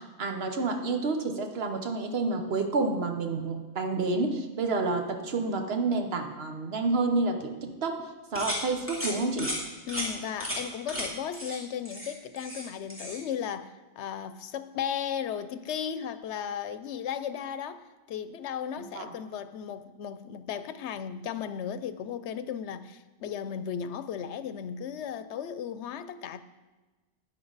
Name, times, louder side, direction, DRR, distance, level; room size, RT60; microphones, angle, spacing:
voice 1, 0.0-8.1 8.3-9.5 18.9-19.1, right 3 dB, 65° right, 5 dB, 1.3 m, -29 dB
sound 1, 8.3-8.6 8.9-9.1 9.4-9.6 9.9-10.1 10.4-10.6 10.9-11.0 11.3-11.6 11.8-12.6 12.9-13.2, equal, 10° right, 2.7 m, -34 dB
voice 2, 9.9-26.4, left 8 dB, 85° left, 13 dB, 0.9 m, -35 dB
11.0 x 9.7 x 4.0 m, 1.2 s
omnidirectional pair, 1.1 m